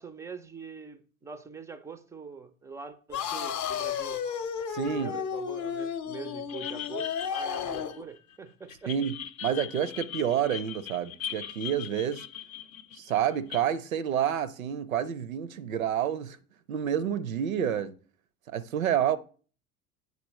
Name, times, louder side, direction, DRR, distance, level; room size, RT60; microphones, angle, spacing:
voice 1, 0.0-4.2 4.9-8.9, right 4 dB, 10° right, 0.3 m, -43 dB
sound 1, 3.1-8.0, left 7 dB, 40° left, 0.7 m, -33 dB
voice 2, 4.7-5.1 8.9-12.3 12.9-16.4 16.7-18.0 18.5-19.2, right 9 dB, 75° right, 0.6 m, -29 dB
sound 2, 6.5-8.3 8.7-13.6, left 10 dB, 75° left, 0.6 m, -40 dB
8.3 x 4.2 x 4.0 m
figure-of-eight pair, 70°, 42 cm